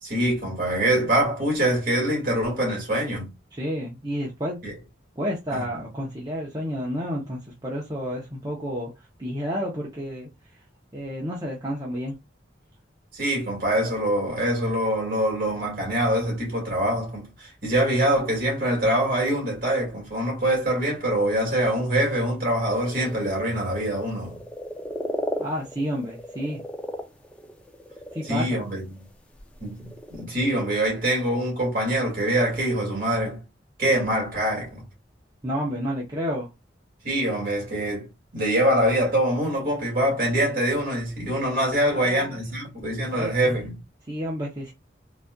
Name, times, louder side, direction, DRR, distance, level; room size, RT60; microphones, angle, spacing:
voice 1, 0.0-3.3 4.6-4.7 5.5-5.6 13.1-24.4 28.2-29.0 29.6-33.4 33.8-34.8 37.0-38.1 38.3-43.8, right 1 dB, 50° right, 2.1 m, -24 dB
voice 2, 3.5-4.6 5.2-10.3 10.9-12.2 25.4-26.6 28.1-28.6 35.4-36.5 41.8-42.4 43.1-43.6 44.1-44.7, equal, 20° right, 0.7 m, -30 dB
sound 1, 22.7-23.6 23.9-29.1 29.4-30.2, equal, 5° left, 0.4 m, -36 dB
4.0 x 2.5 x 2.2 m
head